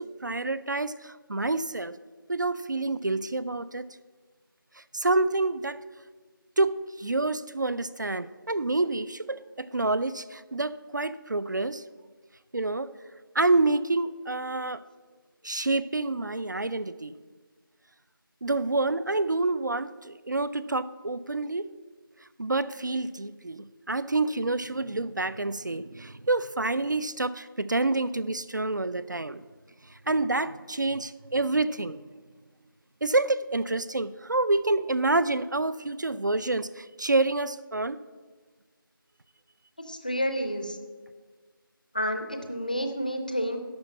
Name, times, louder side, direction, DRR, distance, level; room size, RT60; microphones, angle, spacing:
voice 1, 0.0-2.0 2.3-3.9 4.9-5.8 6.6-11.8 12.5-12.9 13.4-14.8 15.4-17.1 18.4-21.7 22.4-29.4 30.1-32.0 33.0-38.0, right 2 dB, 55° right, 16 dB, 0.4 m, -28 dB
voice 2, 39.9-40.8 41.9-43.6, equal, 20° left, 7 dB, 0.5 m, -29 dB
11.0 x 4.6 x 8.3 m, 1.4 s
figure-of-eight pair, 170°, 12 cm